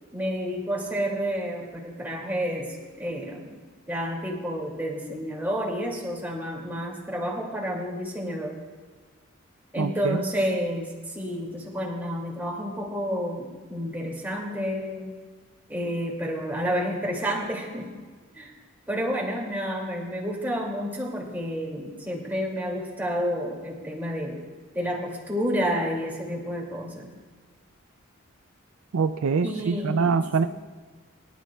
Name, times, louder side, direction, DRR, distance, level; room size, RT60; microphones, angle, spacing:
voice 1, 0.1-3.5 3.9-8.6 9.7-15.1 15.7-17.9 18.3-18.5 18.9-24.4 24.7-27.1 29.4-30.5, equal, 10° right, -2 dB, 2.4 m, -30 dB
voice 2, 9.8-10.2 28.9-30.5, right 5 dB, 75° right, 10 dB, 0.4 m, -24 dB
23.5 x 12.0 x 2.3 m, 1.4 s
head